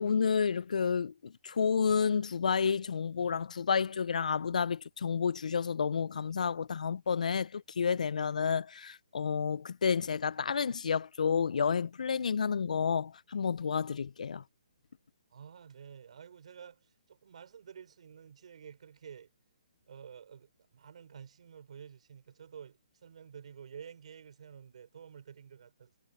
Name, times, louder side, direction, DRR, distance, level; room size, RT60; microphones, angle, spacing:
voice 1, 0.0-14.4, left 6 dB, 75° left, 0.4 m, -30 dB
voice 2, 15.3-19.3 19.9-25.9, right 7 dB, 60° right, 3.9 m, -50 dB
hypercardioid pair, 160°, 4 cm